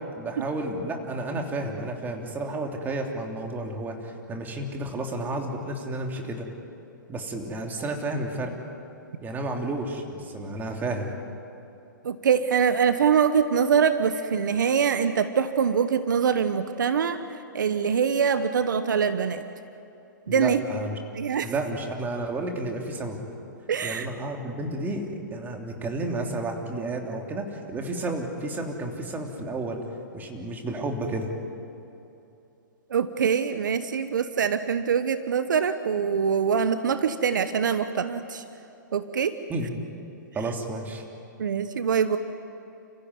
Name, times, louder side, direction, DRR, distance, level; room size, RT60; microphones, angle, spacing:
voice 1, 0.0-6.5 7.1-8.5 9.2-11.1 20.3-21.0 21.4-23.2 23.8-29.8 30.1-31.3 39.5-39.8 40.3-41.0, right 2 dB, 15° right, 2 dB, 3.2 m, -31 dB
voice 2, 12.0-19.4 20.3-20.6 21.1-21.5 23.7-24.1 32.9-38.4 38.9-39.4 41.4-42.2, right 7 dB, 75° right, 11 dB, 1.1 m, -24 dB
30.0 x 15.5 x 9.5 m, 2.8 s
hypercardioid pair, 125°, 10 cm